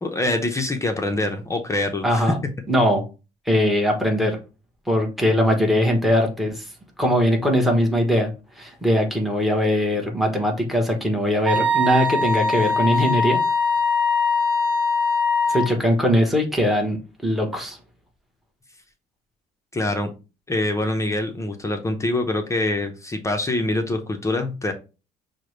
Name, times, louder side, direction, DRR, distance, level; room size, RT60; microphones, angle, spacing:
voice 1, 0.0-2.3 19.7-20.1 20.5-24.7, left 2 dB, 15° left, 4 dB, 0.6 m, -25 dB
voice 2, 2.0-2.4 2.7-3.0 3.5-4.4 4.9-6.7 7.0-8.3 8.6-13.4 15.5-17.0 17.2-17.8, equal, ahead, 2 dB, 1.0 m, -20 dB
Wind instrument woodwind instrument, 11.5-15.7, left 3 dB, 30° right, 1.6 m, -21 dB
6.2 x 2.1 x 3.1 m, 0.31 s
cardioid pair, 110°, 17 cm